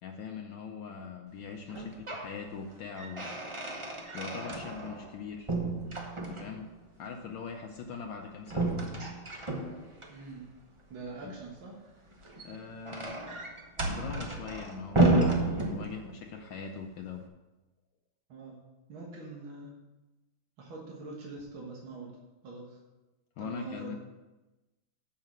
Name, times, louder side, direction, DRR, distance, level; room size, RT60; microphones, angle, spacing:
voice 1, 0.0-3.3 4.1-5.5 6.2-6.7 7.0-8.7 11.2-11.3 12.4-13.2 13.9-17.2 23.4-24.0, left 5 dB, 70° left, 2 dB, 1.4 m, -41 dB
sound 1, 1.7-2.3 2.7-5.2 5.5-6.7 8.5-10.1 12.1-16.3, right 2 dB, 35° right, 0.4 m, -31 dB
voice 2, 10.1-10.5 10.9-11.8 18.3-18.6 18.9-19.7 20.6-22.1 22.4-22.8 23.4-24.0, right 3 dB, 75° right, -2 dB, 2.2 m, -43 dB
7.2 x 5.7 x 7.6 m, 1.1 s
omnidirectional pair, 2.2 m